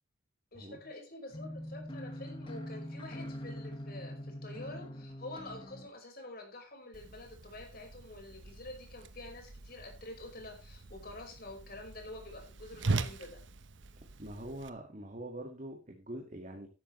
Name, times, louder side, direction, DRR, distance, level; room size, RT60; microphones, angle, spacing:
voice 1, 0.5-13.4, left 2 dB, 50° left, 2 dB, 5.1 m, -47 dB
sound 1, 1.3-5.9, equal, 25° left, 1.9 m, -43 dB
Whoosh swoosh swish, 6.9-14.7, right 3 dB, 70° right, 1.0 m, -41 dB
voice 2, 14.2-16.7, right 1 dB, 40° right, 2 dB, 2.0 m, -44 dB
13.5 x 12.0 x 3.3 m, 0.31 s
head